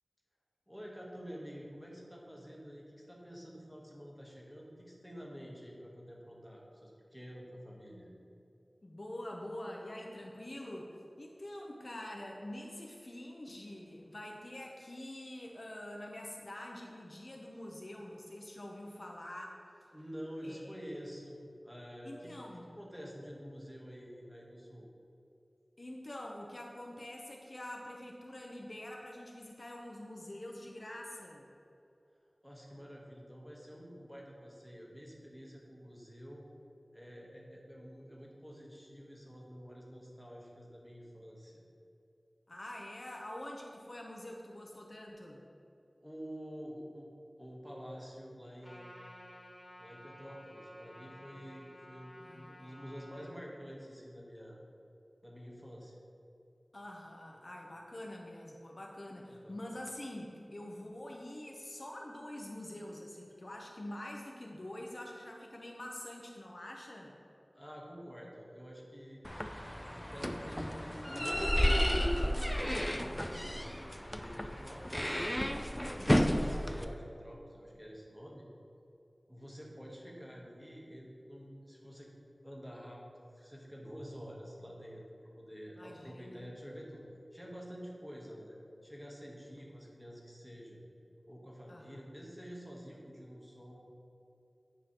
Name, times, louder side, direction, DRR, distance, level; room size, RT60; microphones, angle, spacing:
voice 1, 0.7-8.1 19.9-21.4 21.6-24.9 32.4-36.4 36.9-41.6 46.0-47.1 47.4-48.9 49.8-54.6 55.2-56.0 57.3-57.4 59.2-59.6 67.5-69.4 70.0-72.1 72.5-73.8 74.1-75.3 75.9-78.5 79.3-82.1 82.4-87.0 87.3-88.6 88.8-90.8 91.3-93.8, equal, 5° right, -3 dB, 1.3 m, -48 dB
voice 2, 8.8-19.6 20.4-20.7 22.0-22.7 25.8-31.5 42.5-45.4 52.2-52.8 56.7-67.2 76.0-76.4 85.8-86.4 91.7-92.0, left 1 dB, 50° left, -1 dB, 0.6 m, -46 dB
Trumpet, 48.6-53.3, equal, 35° left, 1.5 m, -54 dB
sound 1, 69.2-76.8, equal, 10° left, 0.3 m, -32 dB
9.0 x 5.0 x 2.9 m, 2.8 s
wide cardioid pair, 55°, 0 cm